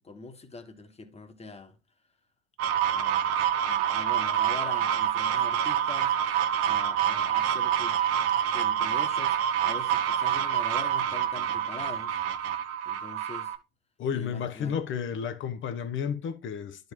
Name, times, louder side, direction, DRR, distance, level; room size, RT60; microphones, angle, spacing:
voice 1, 0.0-1.7 2.9-6.4 6.6-8.0 8.5-12.2 12.8-13.5 14.1-14.8, left 3 dB, 20° left, 1.6 m, -43 dB
sound 1, 2.6-13.6, right 10 dB, 50° right, 1.0 m, -27 dB
voice 2, 14.0-16.9, left 7 dB, 40° left, 1.1 m, -32 dB
12.0 x 5.4 x 2.2 m
figure-of-eight pair, 70°, 30 cm